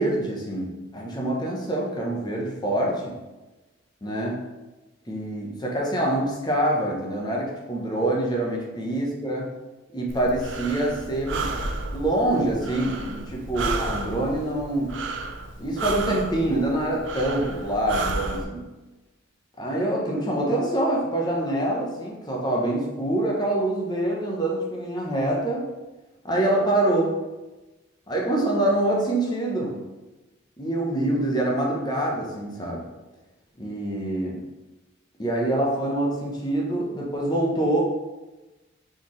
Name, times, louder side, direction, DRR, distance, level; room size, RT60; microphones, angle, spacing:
voice 1, 0.0-3.2 4.0-4.4 5.1-9.5 9.9-11.6 11.9-15.0 15.6-18.7 19.6-25.7 26.2-27.2 28.1-29.8 30.6-32.8 33.6-34.4 35.2-37.8, right 1 dB, 20° left, -2 dB, 0.8 m, -25 dB
Breathing, 10.1-18.4, right 3 dB, 60° right, 0.4 m, -32 dB
4.2 x 3.7 x 3.1 m, 1.1 s
head